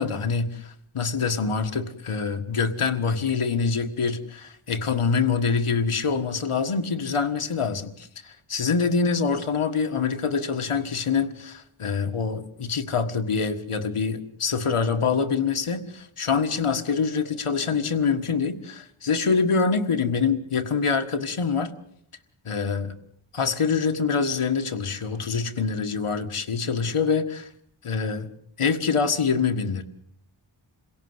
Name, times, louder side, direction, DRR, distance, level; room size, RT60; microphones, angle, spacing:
voice 1, 0.0-21.7 22.4-22.9 23.3-27.5 27.8-28.3 28.6-29.8, left 5 dB, 90° left, 7 dB, 1.8 m, -25 dB
27.5 x 17.5 x 8.0 m, 0.71 s
wide cardioid pair, 65°, 49 cm